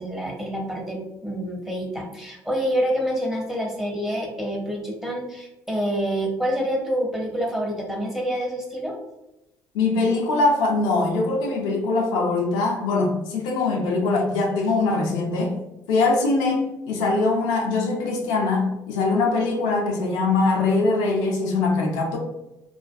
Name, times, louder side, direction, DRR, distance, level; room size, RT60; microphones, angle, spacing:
voice 1, 0.0-9.0, equal, 5° right, -1 dB, 0.9 m, -27 dB
voice 2, 9.7-15.5 15.9-22.2, left 3 dB, 80° left, 0 dB, 0.5 m, -22 dB
2.4 x 2.2 x 2.5 m, 0.94 s
supercardioid pair, 65°, 8 cm